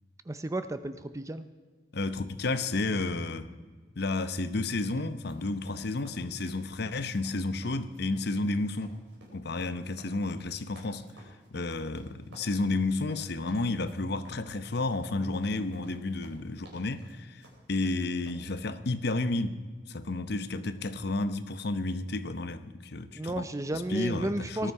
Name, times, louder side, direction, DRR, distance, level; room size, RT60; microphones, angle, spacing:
voice 1, 0.3-1.5 23.1-24.7, right 1 dB, 15° right, 0.5 m, -33 dB
voice 2, 1.9-3.5 4.0-9.0 9.3-11.1 11.5-17.4 17.7-19.6 19.9-23.5 23.7-24.7, left 2 dB, 60° left, 0.8 m, -31 dB
sound 1, 5.2-18.3, right 2 dB, 85° right, 4.7 m, -55 dB
19.0 x 12.5 x 4.7 m
head